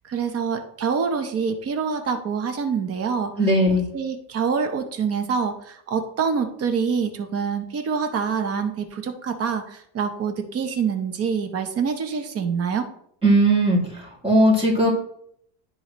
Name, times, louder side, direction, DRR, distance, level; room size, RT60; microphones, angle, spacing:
voice 1, 0.1-3.3 3.9-12.9, right 6 dB, 35° right, 7 dB, 0.8 m, -26 dB
voice 2, 3.4-3.9 13.2-14.9, right 1 dB, 15° right, -4 dB, 2.4 m, -18 dB
11.5 x 3.9 x 3.1 m, 0.69 s
cardioid pair, 155°, 45 cm